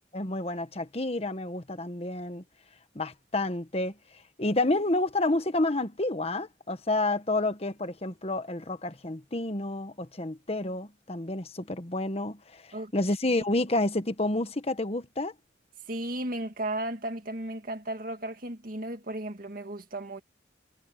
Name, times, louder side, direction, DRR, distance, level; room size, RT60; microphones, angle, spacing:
voice 1, 0.1-2.4 2.9-3.9 4.4-15.3, left 2 dB, 35° left, 1.3 m, -29 dB
voice 2, 15.9-20.2, right 1 dB, 50° right, 2.2 m, -35 dB
head